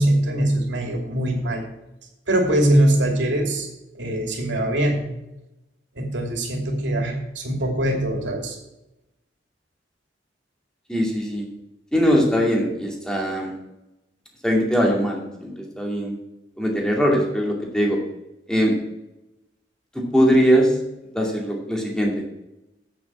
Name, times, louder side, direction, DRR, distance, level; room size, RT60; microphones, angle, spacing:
voice 1, 0.0-1.6 2.3-3.7 3.9-5.0 5.9-8.6, right 1 dB, 90° right, 2 dB, 2.7 m, -22 dB
voice 2, 10.9-11.5 11.9-13.5 14.4-16.1 16.6-18.0 18.5-18.7 20.1-20.7 21.1-22.1, equal, 5° left, -1 dB, 2.4 m, -21 dB
8.7 x 7.6 x 6.3 m, 0.92 s
head